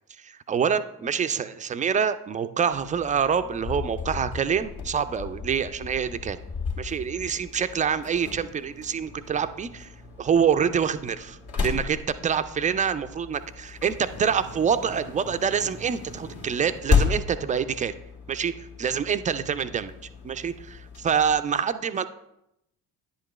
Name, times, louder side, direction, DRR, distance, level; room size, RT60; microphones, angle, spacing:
voice 1, 0.2-6.4 6.8-9.9 10.2-17.9 18.3-19.9 20.2-22.1, right 7 dB, 20° right, 11 dB, 0.3 m, -26 dB
sound 1, 2.7-21.4, left 5 dB, 60° left, 1.8 m, -34 dB
10.5 x 7.8 x 3.1 m, 0.84 s
figure-of-eight pair, 50°, 45 cm